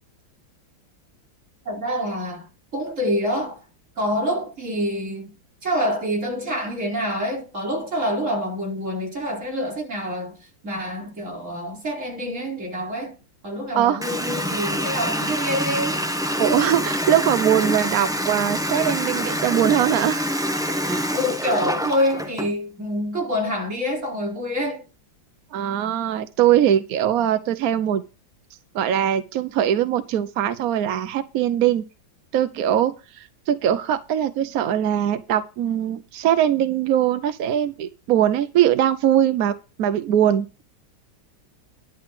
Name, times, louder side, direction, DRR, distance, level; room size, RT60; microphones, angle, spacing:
voice 1, 1.6-3.6 4.0-5.3 5.6-13.2 13.4-16.0 21.1-24.8, equal, 35° right, 4.6 m, -26 dB
Water tap faucet, 14.0-22.5, equal, 5° right, 0.7 m, -26 dB
voice 2, 16.4-20.4 20.9-21.1 25.5-28.0 28.7-31.8 32.3-40.6, right 10 dB, 65° right, 0.9 m, -21 dB
11.5 x 4.6 x 7.9 m
omnidirectional pair, 2.1 m